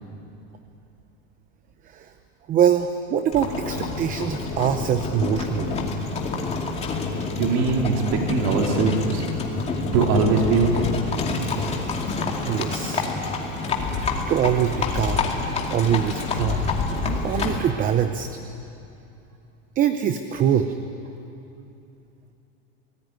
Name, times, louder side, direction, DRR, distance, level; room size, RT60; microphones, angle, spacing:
voice 1, 2.5-5.8 11.3-11.7 12.4-13.1 14.3-15.3 15.7-16.6 17.0-18.3 19.8-20.8, right 9 dB, 25° right, 9 dB, 0.7 m, -23 dB
Livestock farm animals working animals, 3.3-17.7, left 4 dB, 20° left, 2.4 m, -27 dB
voice 2, 7.3-9.3 9.9-10.9, right 4 dB, 55° right, 1 dB, 3.7 m, -21 dB
27.0 x 19.0 x 9.6 m, 2.8 s
supercardioid pair, 165°, 32 cm